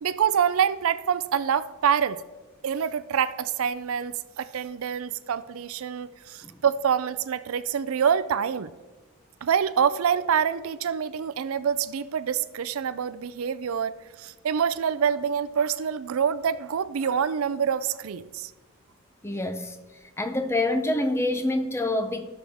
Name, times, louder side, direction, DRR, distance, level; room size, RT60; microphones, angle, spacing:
voice 1, 0.0-2.2 2.6-8.7 9.4-18.5, right 7 dB, 70° right, 14 dB, 0.4 m, -26 dB
voice 2, 19.2-19.8 20.2-22.2, left 2 dB, 10° left, 7 dB, 0.6 m, -26 dB
16.5 x 6.2 x 3.5 m, 1.2 s
head